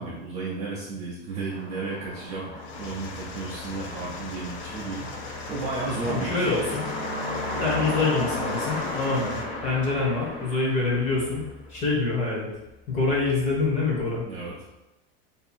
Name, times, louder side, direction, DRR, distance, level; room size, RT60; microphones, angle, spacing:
voice 1, 0.0-5.1 5.5-6.5 14.2-14.6, right 3 dB, 20° right, -6 dB, 0.4 m, -33 dB
sound 1, 1.5-11.7, left 1 dB, 65° left, 1.4 m, -34 dB
sound 2, 2.6-9.5, left 5 dB, 45° left, 0.4 m, -40 dB
voice 2, 6.1-6.8 7.6-11.4 11.7-12.5 12.9-14.2, left 3 dB, 20° left, -4 dB, 0.8 m, -25 dB
2.7 x 2.5 x 4.1 m, 1.0 s
supercardioid pair, 170°, 32 cm